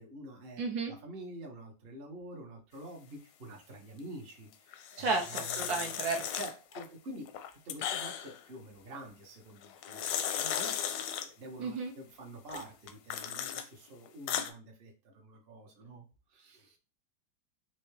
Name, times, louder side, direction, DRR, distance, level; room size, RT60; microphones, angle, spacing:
voice 1, 0.0-7.3 7.6-10.8 11.2-16.0 16.3-16.8, right 1 dB, 50° right, 0 dB, 0.7 m, -47 dB
voice 2, 0.6-0.9 5.0-6.2 11.6-11.9, right 4 dB, 65° right, 2 dB, 1.1 m, -32 dB
sound 1, 4.7-6.9 7.3-8.4 9.6-11.3 12.5-13.6 14.1-14.5, left 9 dB, 85° left, 1.2 m, -36 dB
4.3 x 2.6 x 3.2 m, 0.33 s
omnidirectional pair, 1.9 m